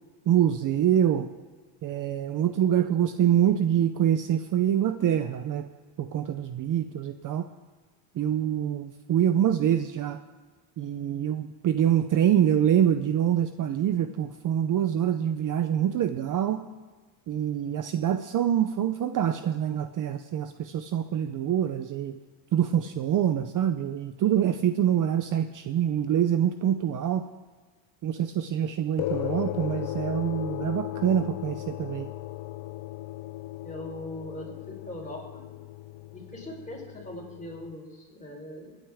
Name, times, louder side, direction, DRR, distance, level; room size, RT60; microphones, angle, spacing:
voice 1, 0.3-1.3 1.8-5.7 6.0-7.4 8.2-10.2 10.8-16.6 17.3-22.2 22.5-27.2 28.0-32.1, right 10 dB, 45° right, 9 dB, 0.6 m, -25 dB
sound 1, 29.0-37.7, left 16 dB, 60° left, 0.5 m, -36 dB
voice 2, 33.6-35.4 36.1-38.8, left 1 dB, 15° left, -1 dB, 4.1 m, -41 dB
24.0 x 9.1 x 3.5 m, 1.4 s
cardioid pair, 125°, 44 cm